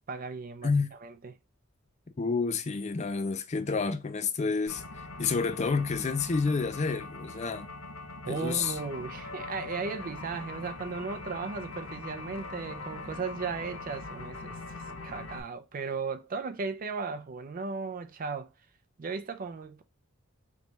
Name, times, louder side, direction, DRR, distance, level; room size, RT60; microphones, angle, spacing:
voice 1, 0.1-0.7 1.0-1.3 8.3-18.5 19.0-19.8, right 4 dB, 40° right, 0.4 m, -36 dB
voice 2, 0.6-0.9 2.2-7.7 8.3-8.8, left 4 dB, 30° left, 0.4 m, -29 dB
sound 1, 4.7-15.4, left 3 dB, 70° left, 0.8 m, -42 dB
4.0 x 3.2 x 3.2 m
head